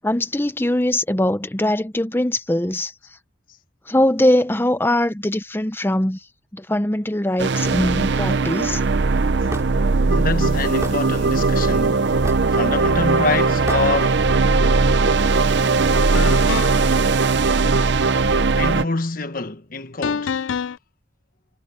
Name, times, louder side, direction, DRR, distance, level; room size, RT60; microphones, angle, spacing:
voice 1, 0.0-2.9 3.9-6.2 6.5-8.8, left 1 dB, 10° left, 0.8 m, -21 dB
sound 1, 7.4-18.8, right 4 dB, 60° right, 0.6 m, -19 dB
Hammer / Wood, 9.5-9.7 10.8-11.0 12.2-12.5 13.7-13.9, right 1 dB, 15° right, 2.6 m, -30 dB
voice 2, 10.1-12.1 12.4-14.2 18.6-20.3, left 3 dB, 45° left, 1.3 m, -26 dB
sound 2, 15.3-15.5 16.1-17.0 20.0-20.8, left 6 dB, 85° left, 0.4 m, -26 dB
head